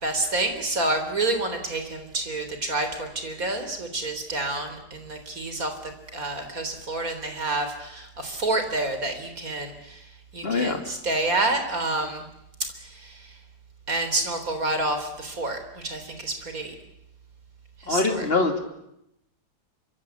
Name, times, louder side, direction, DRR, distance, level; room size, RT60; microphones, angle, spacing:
voice 1, 0.0-5.7 6.1-10.1 10.3-12.3 12.8-13.3 13.9-16.7 17.8-18.2, right 2 dB, 55° right, 7 dB, 4.3 m, -28 dB
voice 2, 10.4-10.8 17.9-18.6, left 3 dB, 35° left, 5 dB, 2.9 m, -23 dB
26.0 x 24.5 x 8.3 m, 0.82 s
omnidirectional pair, 1.8 m